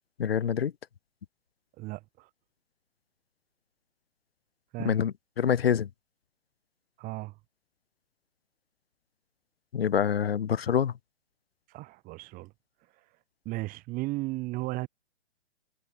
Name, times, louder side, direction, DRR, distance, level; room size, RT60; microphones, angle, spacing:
voice 1, 0.2-0.7 4.8-5.9 9.7-11.0, left 8 dB, 60° left, 2.4 m, -26 dB
voice 2, 1.8-2.3 4.7-4.9 7.0-7.3 11.7-12.5 13.4-14.9, right 20 dB, 25° right, 2.8 m, -35 dB
figure-of-eight pair, 125°, 33 cm